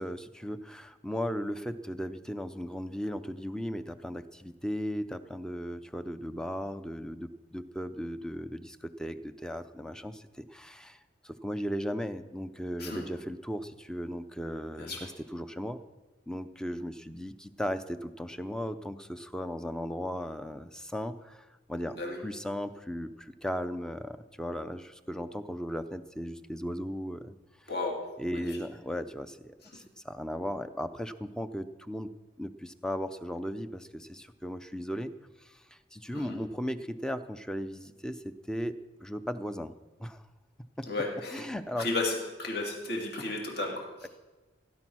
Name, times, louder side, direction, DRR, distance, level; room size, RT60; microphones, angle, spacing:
voice 1, 0.0-15.8 16.3-27.7 28.2-35.1 35.4-39.7 40.0-40.2 40.8-40.9 41.3-41.9 44.0-44.1, equal, 5° left, 11 dB, 0.5 m, -37 dB
voice 2, 14.8-15.1 22.0-22.2 27.7-28.0 28.3-28.5 36.1-36.4 40.9-41.4 41.8-42.1 42.4-44.1, left 2 dB, 55° left, 0 dB, 2.5 m, -33 dB
17.0 x 10.5 x 6.2 m, 1.2 s
head